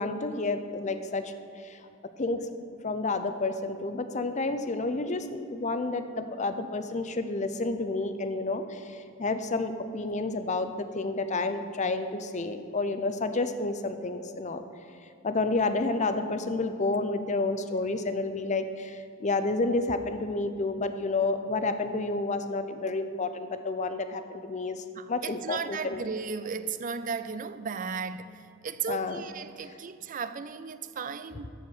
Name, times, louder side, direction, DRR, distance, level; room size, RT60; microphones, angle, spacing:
voice 1, 0.0-1.3 1.6-1.8 2.2-2.4 2.8-14.6 15.2-26.0 28.9-29.2, left 3 dB, 35° left, 0.6 m, -30 dB
voice 2, 25.0-31.5, right 5 dB, 40° right, 0.4 m, -35 dB
13.5 x 4.7 x 7.2 m
head